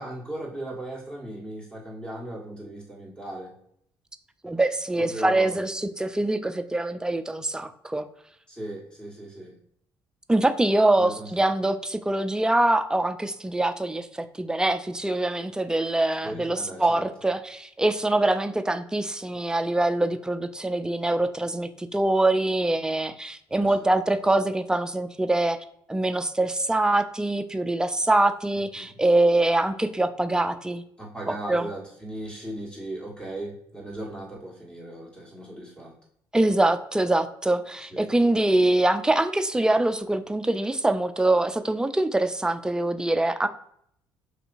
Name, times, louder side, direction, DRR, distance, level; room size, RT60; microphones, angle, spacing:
voice 1, 0.0-3.5 4.9-5.6 8.5-9.5 10.9-11.5 16.2-17.3 23.5-23.9 28.6-29.0 31.0-36.0 37.9-38.1, right 1 dB, 10° left, -3 dB, 1.4 m, -37 dB
voice 2, 4.4-8.0 10.3-25.6 25.9-30.8 31.3-31.7 36.3-43.5, right 2 dB, 5° right, 9 dB, 0.4 m, -24 dB
4.4 x 2.7 x 2.6 m, 0.70 s
hypercardioid pair, 60°, 10 cm